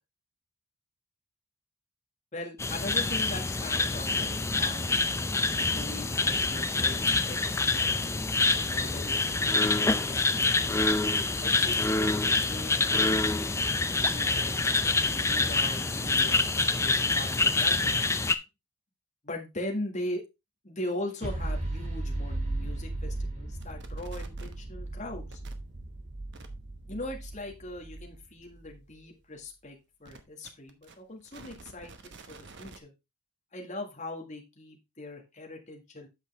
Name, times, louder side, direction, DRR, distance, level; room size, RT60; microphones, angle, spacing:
voice 1, 2.3-4.9 5.7-8.0 8.7-10.5 11.4-13.6 14.1-14.5 15.0-18.1 19.2-20.2 20.6-25.4 26.9-32.9 33.5-36.1, left 1 dB, 30° left, 2 dB, 1.8 m, -40 dB
sound 1, 2.6-18.3, left 3 dB, 10° left, 0.4 m, -26 dB
sound 2, 21.2-28.7, right 2 dB, 30° right, 2.4 m, -36 dB
sound 3, 23.6-24.6 25.3-25.5 26.3-26.5 30.1-32.8, right 3 dB, 50° right, 1.0 m, -49 dB
8.3 x 6.4 x 3.4 m, 0.24 s
head